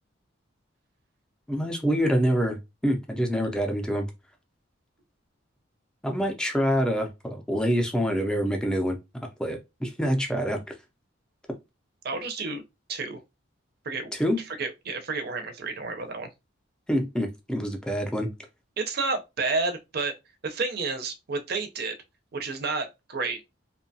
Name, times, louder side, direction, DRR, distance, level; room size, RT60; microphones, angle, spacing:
voice 1, 1.5-4.1 6.0-9.0 9.4-10.6 14.2-14.4 16.9-18.3, equal, 5° left, 0.5 m, -26 dB
voice 2, 12.0-12.6 12.9-13.2 13.8-14.1 14.4-16.3 18.8-20.2 20.4-22.0 22.3-23.4, right 3 dB, 50° right, 0.5 m, -30 dB
2.7 x 2.2 x 2.6 m
head